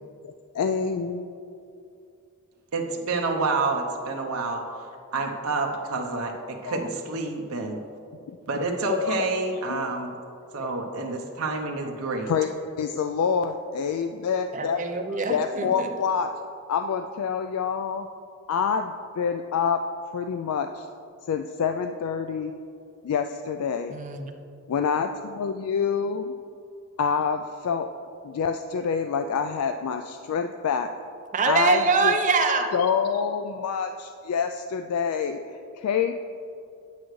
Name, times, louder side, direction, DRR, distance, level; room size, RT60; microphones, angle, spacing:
voice 1, 0.2-1.2 6.6-6.9 8.9-9.3 9.7-9.8 10.6-10.7 12.3-14.9 15.3-16.3 16.7-18.1 18.5-19.8 20.1-20.9 21.3-22.6 23.0-24.0 24.7-26.3 27.0-27.9 28.2-30.9 31.4-32.1 32.7-35.4 35.7-36.1, left 6 dB, 85° left, 7 dB, 0.3 m, -27 dB
voice 2, 2.7-4.6 5.1-7.8 8.5-10.1 10.5-12.3, right 3 dB, 70° right, 1 dB, 0.8 m, -28 dB
voice 3, 14.5-15.9 23.9-24.3 31.3-32.7, right 4 dB, 35° right, 4 dB, 0.7 m, -24 dB
9.1 x 8.4 x 3.2 m, 2.6 s
head